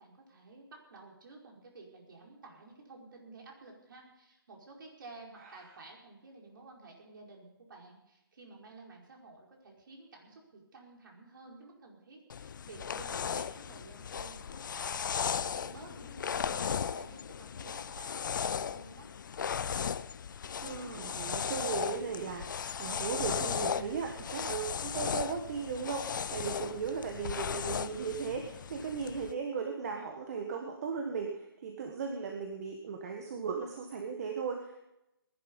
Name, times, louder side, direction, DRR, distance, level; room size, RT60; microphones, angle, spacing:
voice 1, 0.0-19.1 26.4-26.7, right 3 dB, 60° right, -1 dB, 5.0 m, -53 dB
sound 1, 12.3-29.3, left 7 dB, 55° left, 0.6 m, -36 dB
voice 2, 20.6-34.8, right 5 dB, 40° right, 3 dB, 1.7 m, -37 dB
19.5 x 11.5 x 5.5 m, 0.90 s
hypercardioid pair, 155°, 13 cm